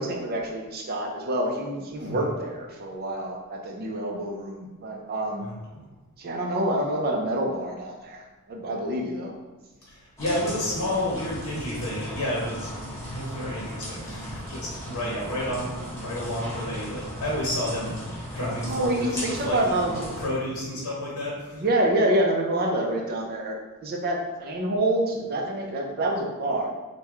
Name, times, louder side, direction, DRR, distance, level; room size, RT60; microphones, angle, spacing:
voice 1, 0.0-5.5 6.2-9.3 18.6-20.1 21.5-26.7, right 1 dB, 45° right, 0 dB, 0.5 m, -27 dB
voice 2, 2.0-2.3 5.4-5.8 9.9-12.7 13.1-19.7 20.2-21.7, left 1 dB, 75° left, -5 dB, 0.8 m, -31 dB
sound 1, 10.2-20.3, equal, 15° left, 0.9 m, -37 dB
3.0 x 2.2 x 3.5 m, 1.2 s
head